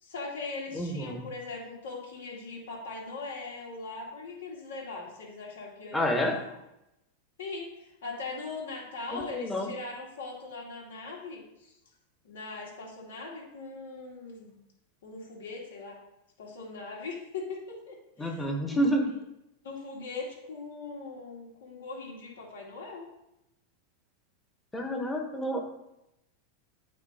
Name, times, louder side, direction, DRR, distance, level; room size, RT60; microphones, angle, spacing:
voice 1, 0.0-6.5 7.4-11.7 12.2-14.6 15.0-16.0 16.4-18.8 19.6-23.1, left 3 dB, 80° left, -2 dB, 2.2 m, -40 dB
voice 2, 0.7-1.2 5.9-6.4 9.1-9.7 18.2-19.1 24.7-25.6, equal, 10° left, 3 dB, 1.2 m, -29 dB
8.8 x 3.1 x 4.2 m, 0.87 s
hypercardioid pair, 120°, 0 cm